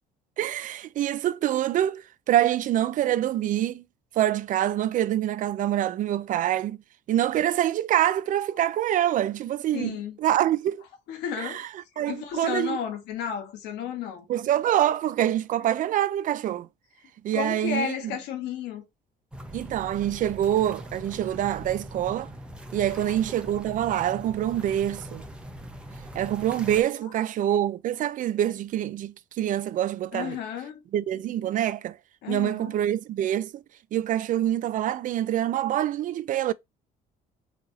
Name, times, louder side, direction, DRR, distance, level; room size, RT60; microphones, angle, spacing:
voice 1, 0.4-3.8 4.2-6.8 7.1-10.8 11.4-11.5 12.0-12.8 14.3-16.7 17.2-18.0 19.5-22.3 22.7-25.2 26.1-30.4 30.9-32.0 32.3-33.6 33.9-36.5, right 12 dB, 50° right, 0.4 m, -25 dB
voice 2, 9.7-10.2 11.1-11.6 11.9-14.3 17.3-18.8 23.0-23.1 27.0-27.1 30.1-30.8 32.2-32.7, left 8 dB, 90° left, 1.2 m, -33 dB
sound 1, 19.3-26.8, right 1 dB, 5° right, 0.7 m, -41 dB
4.2 x 2.8 x 2.6 m
cardioid pair, 110°, 17 cm